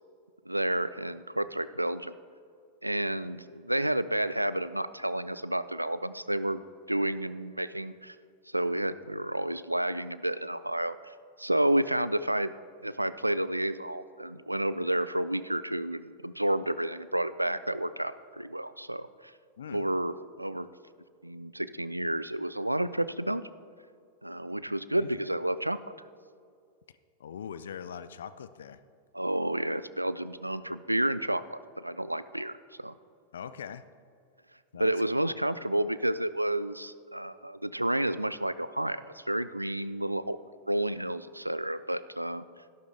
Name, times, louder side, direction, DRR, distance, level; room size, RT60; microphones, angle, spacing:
voice 1, 0.5-2.1 2.8-6.6 6.9-8.2 8.5-12.5 12.8-19.3 19.7-20.7 21.2-23.4 24.2-25.8 29.1-32.9 34.8-40.4 40.7-42.4, right 1 dB, 85° right, 15 dB, 0.3 m, -30 dB
voice 2, 19.6-19.9 24.9-25.2 27.2-28.8 33.3-33.8 34.7-34.9 35.2-35.3, left 8 dB, 65° left, 14 dB, 0.4 m, -42 dB
12.5 x 11.5 x 3.4 m, 2.2 s
figure-of-eight pair, 90°, 0 cm